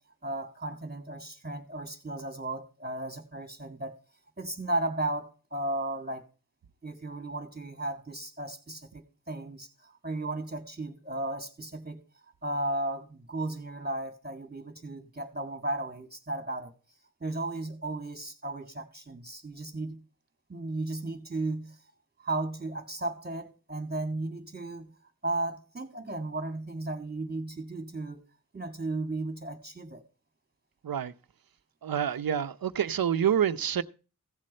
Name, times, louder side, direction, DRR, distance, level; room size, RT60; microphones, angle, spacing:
voice 1, 0.2-4.0 4.4-6.3 6.8-12.0 12.4-16.7 17.2-20.0 20.5-21.8 22.2-24.9 25.2-28.3 28.5-30.0, right 2 dB, 25° right, 2.3 m, -35 dB
voice 2, 31.8-33.8, right 9 dB, 80° right, 0.7 m, -27 dB
16.0 x 7.5 x 4.3 m
cardioid pair, 45°, 35 cm